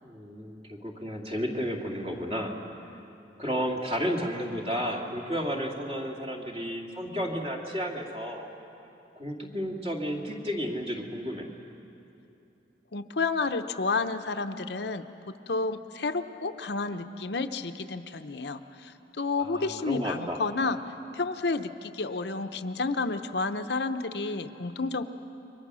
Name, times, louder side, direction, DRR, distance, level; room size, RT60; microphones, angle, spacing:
voice 1, 0.0-2.5 3.4-8.5 9.1-11.5 19.4-20.4, equal, 35° right, 0 dB, 2.4 m, -32 dB
voice 2, 12.9-20.8 21.1-25.0, left 3 dB, 70° left, 8 dB, 0.8 m, -31 dB
29.0 x 23.0 x 6.3 m, 2.8 s
head